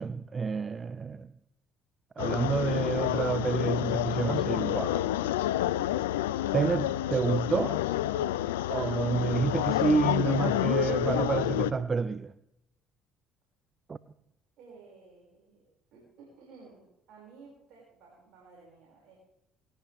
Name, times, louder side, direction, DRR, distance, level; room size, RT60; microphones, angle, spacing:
voice 1, 0.0-1.3 2.2-5.1 6.5-7.8 8.7-12.3 13.9-14.0, right 5 dB, 35° right, 0.5 m, -29 dB
sound 1, 2.2-11.7, left 13 dB, 90° left, 0.5 m, -29 dB
voice 2, 14.6-19.2, right 4 dB, 65° right, 6.5 m, -54 dB
20.0 x 16.0 x 3.7 m
hypercardioid pair, 65°, 0 cm